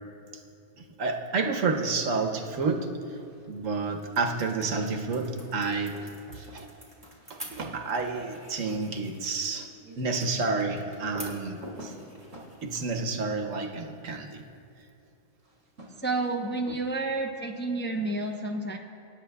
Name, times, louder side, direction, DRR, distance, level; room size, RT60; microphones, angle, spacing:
voice 1, 0.8-3.2 3.5-6.1 6.3-6.7 7.3-11.9 12.6-14.4 16.7-16.8, right 4 dB, 90° right, 3 dB, 1.3 m, -30 dB
sound 1, 2.6-2.9 3.1-14.2 15.4-16.6, right 1 dB, 60° right, 2.8 m, -50 dB
sound 2, 3.4-14.9, right 1 dB, 15° right, 2.9 m, -51 dB
voice 2, 16.0-18.8, right 2 dB, 15° left, 1 dB, 0.5 m, -30 dB
26.0 x 10.5 x 2.3 m, 2.6 s
omnidirectional pair, 1.3 m